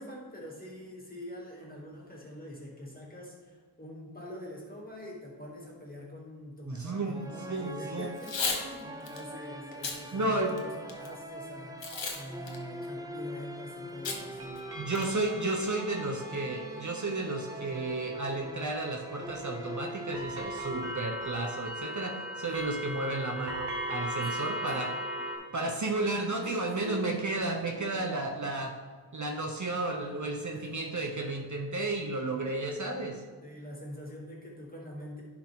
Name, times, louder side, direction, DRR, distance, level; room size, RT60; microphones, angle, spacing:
voice 1, 0.0-15.0 22.5-22.8 24.2-24.9 25.4-25.7 26.4-27.1 27.6-28.1 30.5-30.8 33.4-35.2, equal, 20° left, -4 dB, 2.5 m, -45 dB
voice 2, 6.7-8.1 10.1-10.5 14.8-24.9 25.5-28.7 29.1-33.2, right 2 dB, 40° right, 2 dB, 0.9 m, -33 dB
sound 1, 7.1-20.9, equal, 10° right, 0.6 m, -43 dB
Packing tape duct tape / Tearing, 8.1-8.6 9.1-9.2 9.7-10.0 10.5-11.1 11.8-12.2 12.5-12.6 14.0-14.2 14.6-14.7 14.9-15.3, left 4 dB, 85° left, 1.2 m, -33 dB
sound 2, 13.0-25.4, equal, 65° right, 1.6 m, -40 dB
11.0 x 4.9 x 3.7 m, 1.5 s
wide cardioid pair, 75°, 43 cm